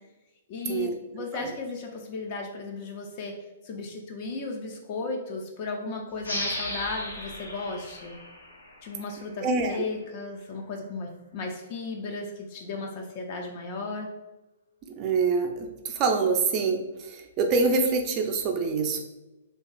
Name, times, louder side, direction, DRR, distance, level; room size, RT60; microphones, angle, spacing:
voice 1, 0.5-3.3 3.6-8.2 8.8-14.1, left 3 dB, 40° left, 2 dB, 0.4 m, -35 dB
sound 1, 6.2-9.5, left 1 dB, 80° left, 0.6 m, -36 dB
voice 2, 9.4-9.8 14.9-19.0, right 4 dB, 30° right, 3 dB, 0.4 m, -26 dB
2.9 x 2.3 x 2.4 m, 1.0 s
figure-of-eight pair, 115°, 0 cm